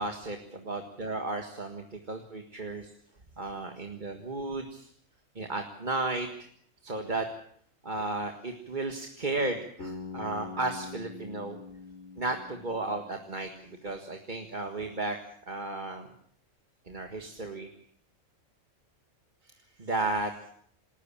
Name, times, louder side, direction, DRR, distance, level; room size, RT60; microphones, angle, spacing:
voice 1, 0.0-2.9 3.4-4.9 5.4-6.5 6.8-7.3 7.8-11.6 12.2-15.2 15.5-16.1 16.9-17.7 19.8-20.3, right 2 dB, 35° right, 4 dB, 1.9 m, -34 dB
Bass guitar, 9.8-13.9, left 3 dB, 60° left, 4.4 m, -44 dB
27.5 x 13.5 x 8.6 m, 0.64 s
omnidirectional pair, 1.4 m